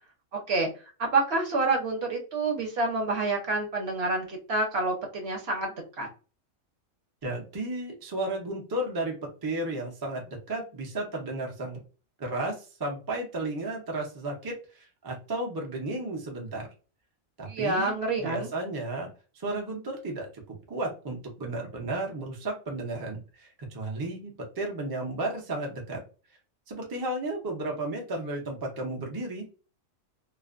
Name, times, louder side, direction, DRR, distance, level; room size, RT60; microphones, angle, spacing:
voice 1, 1.0-6.1 17.5-18.5, right 3 dB, 60° right, 2 dB, 0.9 m, -28 dB
voice 2, 7.2-11.8 12.2-16.7 17.4-19.1 19.3-26.0 26.7-29.5, right 2 dB, 35° right, 0 dB, 0.3 m, -33 dB
2.4 x 2.1 x 2.4 m, 0.34 s
omnidirectional pair, 1.3 m